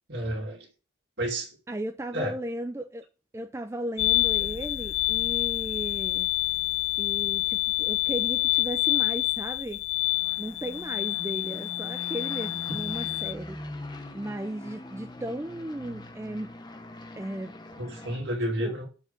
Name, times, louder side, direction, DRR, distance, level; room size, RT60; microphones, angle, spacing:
voice 1, 0.1-0.7 1.2-1.6 2.1-2.4 17.8-18.9, right 1 dB, 60° right, 2.3 m, -30 dB
voice 2, 1.7-3.1 3.3-6.3 7.0-9.8 10.4-13.6 14.1-16.5 17.1-17.6 18.6-18.8, right 1 dB, 15° right, 0.4 m, -36 dB
sound 1, 4.0-13.3, left 21 dB, 75° left, 0.4 m, -27 dB
sound 2, 10.0-18.2, left 1 dB, 20° left, 0.9 m, -42 dB
7.1 x 4.6 x 6.6 m
head